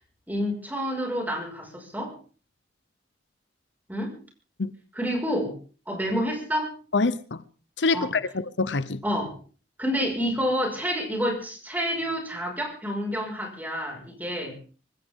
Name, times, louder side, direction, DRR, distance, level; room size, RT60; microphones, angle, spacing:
voice 1, 0.3-2.1 3.9-4.2 4.9-5.6 5.9-6.7 7.9-8.1 9.0-9.4 9.8-14.6, equal, 10° right, 5.8 m, -28 dB
voice 2, 6.9-7.4 7.8-9.0, left 3 dB, 85° left, 0.9 m, -25 dB
25.0 x 15.0 x 3.8 m
head